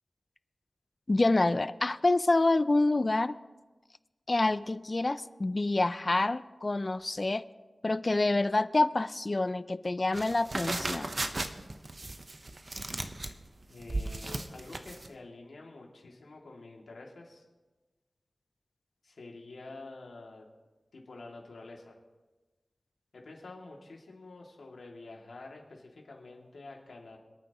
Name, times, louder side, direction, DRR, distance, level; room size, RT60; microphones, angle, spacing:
voice 1, 1.1-3.3 4.3-7.4 7.8-11.1, left 2 dB, 35° left, 14 dB, 0.4 m, -27 dB
sound 1, 10.1-15.1, right 2 dB, 40° right, 0.9 m, -36 dB
voice 2, 13.7-17.4 19.0-20.5 20.9-22.0 23.1-27.2, left 3 dB, 80° left, -1 dB, 2.5 m, -48 dB
27.0 x 9.1 x 3.0 m, 1.2 s
wide cardioid pair, 80°, 0 cm